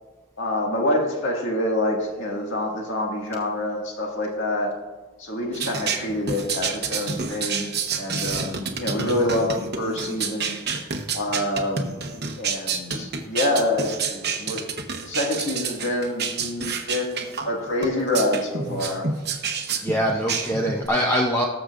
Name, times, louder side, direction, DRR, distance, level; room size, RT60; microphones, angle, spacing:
voice 1, 0.4-4.7 5.2-7.7 8.0-10.5 11.1-12.0 12.4-14.7 15.0-19.0, left 1 dB, 60° left, -1 dB, 2.0 m, -26 dB
sound 1, 5.5-20.9, right 5 dB, 50° right, 1.0 m, -29 dB
voice 2, 19.8-21.4, equal, 10° left, -1 dB, 0.6 m, -23 dB
19.5 x 6.6 x 2.5 m, 1.3 s
head